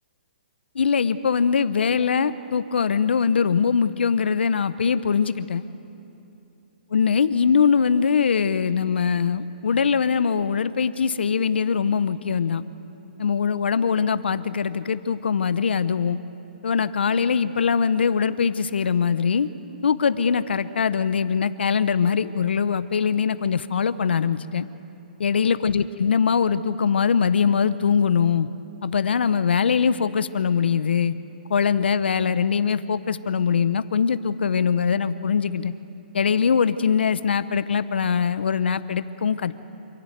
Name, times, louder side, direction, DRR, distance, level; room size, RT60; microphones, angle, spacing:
voice 1, 0.7-5.6 6.9-12.6 13.2-16.2 16.6-19.5 19.8-24.7 25.2-28.5 28.8-31.1 31.5-35.7 36.1-39.6, left 6 dB, 80° left, 14 dB, 0.8 m, -22 dB
26.5 x 11.0 x 9.3 m, 2.8 s
hypercardioid pair, 155°, 6 cm